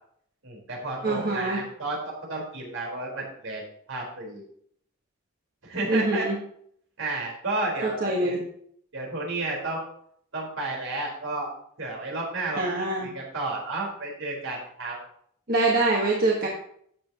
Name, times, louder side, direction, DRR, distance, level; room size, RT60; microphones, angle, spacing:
voice 1, 0.4-3.6 3.9-4.4 5.6-6.3 7.0-8.4 8.9-9.8 10.3-11.5 11.8-15.0, right 2 dB, 70° right, -2 dB, 4.5 m, -32 dB
voice 2, 1.0-1.6 5.9-6.4 7.8-8.4 12.6-13.1 15.5-16.5, right 2 dB, 45° right, -2 dB, 1.5 m, -24 dB
13.0 x 9.1 x 3.0 m, 0.65 s
head